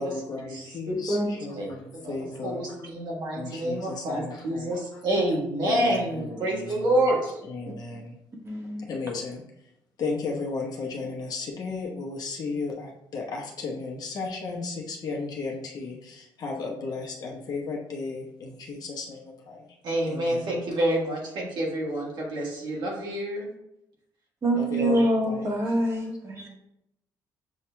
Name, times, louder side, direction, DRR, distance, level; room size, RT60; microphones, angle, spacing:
voice 1, 0.0-2.9 3.3-5.0 5.6-7.1 7.4-8.2 8.8-9.4 10.0-19.7 20.0-20.6 24.5-25.5, left 4 dB, 50° left, -1 dB, 1.0 m, -35 dB
voice 2, 0.9-1.3 8.4-8.9 24.4-26.5, right 1 dB, 35° right, -1 dB, 1.4 m, -25 dB
voice 3, 2.4-7.4 19.8-23.5, right 1 dB, 60° right, -2 dB, 1.5 m, -27 dB
7.3 x 2.8 x 2.2 m, 0.83 s
cardioid pair, 100°, 8 cm